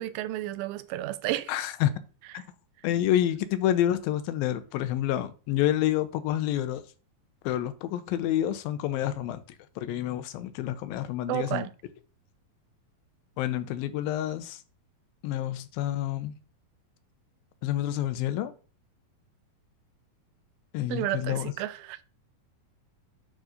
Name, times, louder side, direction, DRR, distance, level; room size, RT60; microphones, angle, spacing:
voice 1, 0.0-1.5 11.3-11.7 20.9-22.0, right 15 dB, 90° right, 2.4 m, -32 dB
voice 2, 1.5-1.9 2.3-2.4 2.8-6.8 7.5-9.4 9.8-11.7 13.4-14.6 15.2-16.3 17.6-18.5 20.7-21.5, left 12 dB, 85° left, 2.5 m, -28 dB
9.2 x 3.8 x 4.9 m
omnidirectional pair, 4.1 m